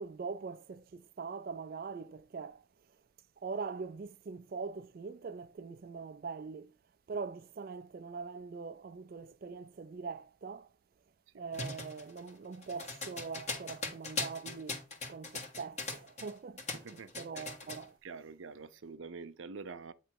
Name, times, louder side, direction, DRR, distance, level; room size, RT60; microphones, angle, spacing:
voice 1, 0.0-2.7 3.4-6.8 7.1-10.7 11.3-18.0, right 5 dB, 50° right, 0.4 m, -42 dB
sound 1, 11.5-16.3 16.6-17.8, left 3 dB, 35° left, 1.4 m, -40 dB
voice 2, 16.7-17.4 18.0-19.9, right 4 dB, 90° right, 0.6 m, -46 dB
8.7 x 3.0 x 4.6 m
head